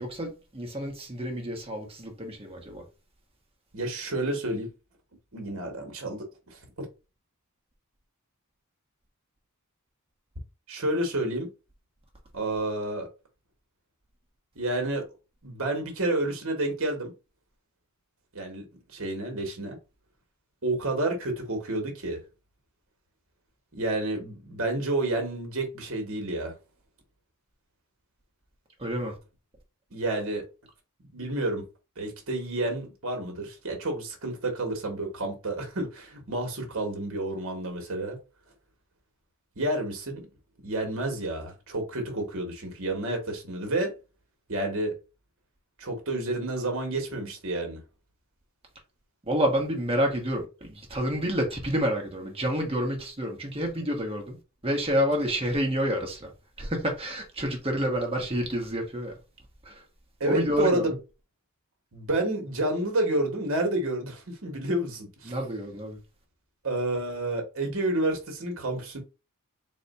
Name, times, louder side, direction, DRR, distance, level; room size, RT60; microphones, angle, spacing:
voice 1, 0.0-2.8 28.8-29.1 49.3-54.4 54.6-56.3 56.6-59.1 59.6-59.8 60.2-60.9 65.2-66.0, equal, 25° right, 1.1 m, -29 dB
voice 2, 3.7-4.7 5.3-6.6 10.7-11.5 12.3-13.1 14.5-15.0 15.4-17.1 18.3-19.8 20.6-22.2 23.8-26.5 29.9-30.4 31.1-31.6 32.0-38.2 39.6-40.2 40.6-43.9 44.5-44.9 45.8-47.8 60.2-60.9 61.9-65.3 66.6-69.0, right 2 dB, 60° right, 1.2 m, -30 dB
4.1 x 2.2 x 4.1 m
head